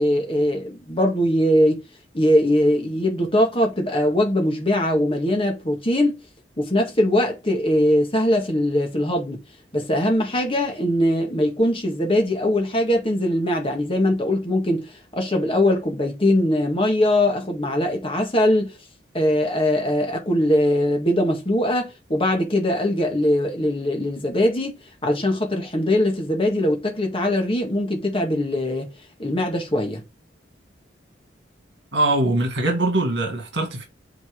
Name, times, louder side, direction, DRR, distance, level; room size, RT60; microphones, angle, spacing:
voice 1, 0.0-1.8 2.1-6.2 6.6-9.4 9.7-18.7 19.1-28.9 29.2-30.0, left 1 dB, 30° left, 1.8 m, -21 dB
voice 2, 31.9-33.8, right 2 dB, 65° right, 2.2 m, -22 dB
8.0 x 4.1 x 3.8 m
head